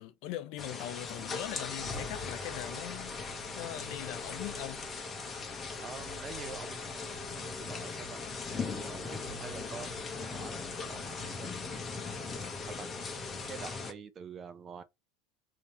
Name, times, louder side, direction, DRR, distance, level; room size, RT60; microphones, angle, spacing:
voice 1, 0.0-3.2 3.6-4.8, left 13 dB, 60° left, 0.6 m, -41 dB
sound 1, 0.6-13.9, left 4 dB, 20° left, 0.9 m, -39 dB
voice 2, 5.8-8.2 8.5-11.6 12.8-12.9 13.5-14.8, right 6 dB, 25° right, 0.6 m, -47 dB
3.5 x 2.8 x 4.3 m
supercardioid pair, 145°, 0 cm